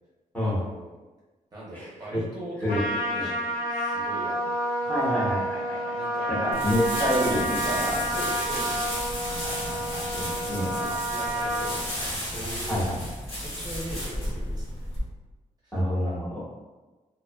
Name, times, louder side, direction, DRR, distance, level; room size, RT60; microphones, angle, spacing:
voice 1, 0.4-1.0 1.5-4.6 5.9-7.0 7.6-9.1 10.3-13.1 13.4-14.9 15.6-15.8, right 1 dB, 30° right, -7 dB, 0.6 m, -41 dB
voice 2, 1.7-2.2 2.6-2.8 3.1-3.2 4.9-5.9 6.3-8.0 9.4-10.9 12.7-13.0 15.7-16.4, left 1 dB, 10° left, -8 dB, 0.7 m, -28 dB
Trumpet, 2.7-11.8, right 1 dB, 75° left, 0.6 m, -29 dB
sound 1, 6.5-15.0, equal, 45° left, 0.9 m, -33 dB
2.5 x 2.2 x 2.2 m, 1.2 s
wide cardioid pair, 140°, 14 cm